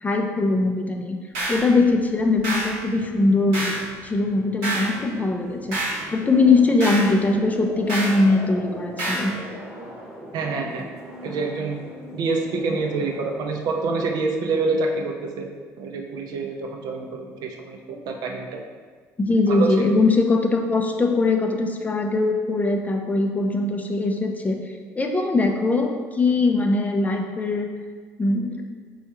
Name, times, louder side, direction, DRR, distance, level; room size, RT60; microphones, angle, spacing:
voice 1, 0.0-1.2 1.5-3.7 4.0-9.3 19.2-24.6 25.0-27.7 28.2-28.5, left 3 dB, 20° left, 3 dB, 0.4 m, -21 dB
sound 1, 1.3-14.7, equal, 10° right, 0.9 m, -42 dB
sound 2, 1.3-1.7 2.4-2.8 3.5-3.9 4.6-4.9 5.7-6.0 6.8-7.1 7.9-8.2 9.0-9.3, right 2 dB, 85° right, 0.9 m, -27 dB
voice 2, 10.3-10.9 11.2-11.8 12.1-15.5 15.8-18.6 19.5-19.9, right 3 dB, 65° right, 2 dB, 0.5 m, -27 dB
4.3 x 2.3 x 2.8 m, 1.5 s
supercardioid pair, 80°, 7 cm